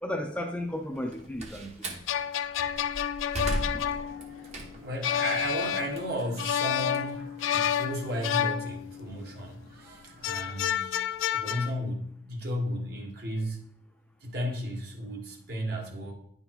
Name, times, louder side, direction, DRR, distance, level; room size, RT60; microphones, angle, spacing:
voice 1, 0.0-2.0 3.9-4.0, left 1 dB, 5° left, 3 dB, 0.5 m, -34 dB
Slam, 0.9-2.1 2.6-5.0 5.4-7.8, right 1 dB, 35° right, 1.0 m, -36 dB
sound 1, 1.8-9.3 10.2-11.7, left 9 dB, 85° left, 0.3 m, -30 dB
sound 2, 3.7-10.4, right 1 dB, 85° right, 1.7 m, -53 dB
voice 2, 4.8-7.3 7.5-11.1 11.3-13.6 14.2-16.1, equal, 55° right, 0 dB, 1.5 m, -34 dB
10.0 x 5.4 x 3.0 m, 0.67 s
head